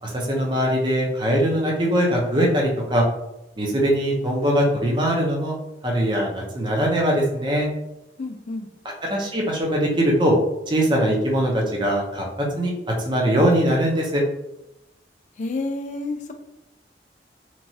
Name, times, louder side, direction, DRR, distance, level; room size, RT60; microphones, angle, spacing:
voice 1, 0.0-3.0 3.6-5.6 5.8-7.7 9.0-10.4 10.7-12.7 13.0-14.2, equal, 25° right, -1 dB, 0.5 m, -21 dB
voice 2, 8.2-8.7 15.4-16.3, left 2 dB, 40° left, 5 dB, 0.3 m, -29 dB
3.0 x 2.3 x 2.7 m, 0.88 s
head